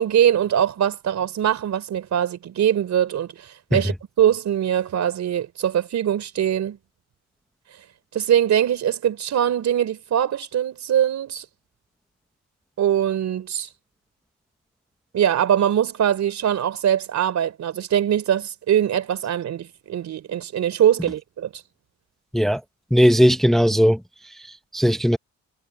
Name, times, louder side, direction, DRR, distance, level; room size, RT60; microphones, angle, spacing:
voice 1, 0.0-6.8 8.1-11.5 12.8-13.7 15.1-21.5, right 10 dB, 65° right, 3.8 m, -22 dB
voice 2, 22.9-24.0 24.7-25.2, equal, ahead, 0.8 m, -17 dB
cardioid pair, 90°, 30 cm